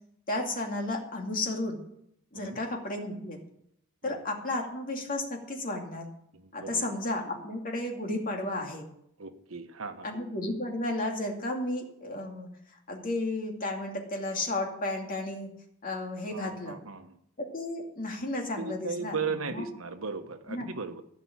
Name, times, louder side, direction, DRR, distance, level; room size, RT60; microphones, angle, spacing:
voice 1, 0.3-1.8 2.3-3.4 4.0-6.1 6.5-8.9 10.0-12.5 12.9-15.5 15.8-16.8 17.4-19.7 20.5-20.7, left 2 dB, 40° left, 1 dB, 2.5 m, -33 dB
voice 2, 6.3-6.9 9.2-10.1 16.3-17.1 18.6-21.0, right 5 dB, 80° right, 8 dB, 1.2 m, -37 dB
15.5 x 6.0 x 8.7 m, 0.73 s
head